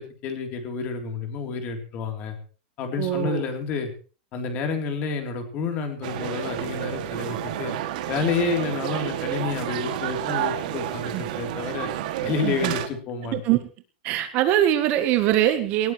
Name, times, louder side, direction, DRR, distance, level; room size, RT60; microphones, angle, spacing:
voice 1, 0.0-2.4 2.8-3.9 4.3-7.8 8.1-11.9 12.2-13.4, left 5 dB, 30° left, 5 dB, 3.4 m, -29 dB
voice 2, 3.0-3.4 11.1-11.2 12.4-12.7 13.3-13.6 14.0-15.9, right 12 dB, 30° right, 10 dB, 1.2 m, -22 dB
sound 1, 6.0-12.9, right 12 dB, 50° right, 2.3 m, -30 dB
19.0 x 18.5 x 3.2 m, 0.38 s
supercardioid pair, 170°, 5 cm